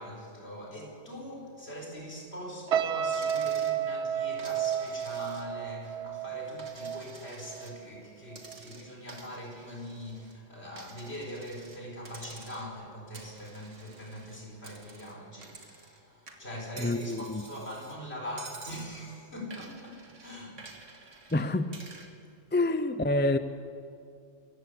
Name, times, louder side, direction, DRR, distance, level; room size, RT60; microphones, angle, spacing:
voice 1, 0.0-20.6, equal, 55° left, -1 dB, 4.9 m, -42 dB
sound 1, 2.7-8.0 8.3-8.6, right 9 dB, 70° right, 1.0 m, -32 dB
Coin (dropping), 3.1-3.8 4.4-5.7 6.1-7.8 8.3-10.4 10.8-11.8 12.1-12.8 13.1-16.0 16.3-18.0 18.4-18.9 19.5-22.1, right 3 dB, 85° right, 2.3 m, -50 dB
voice 2, 16.8-17.4 21.3-21.8 22.5-23.4, left 2 dB, 10° left, 10 dB, 0.5 m, -27 dB
26.0 x 15.0 x 8.5 m, 2.4 s
omnidirectional pair, 1.2 m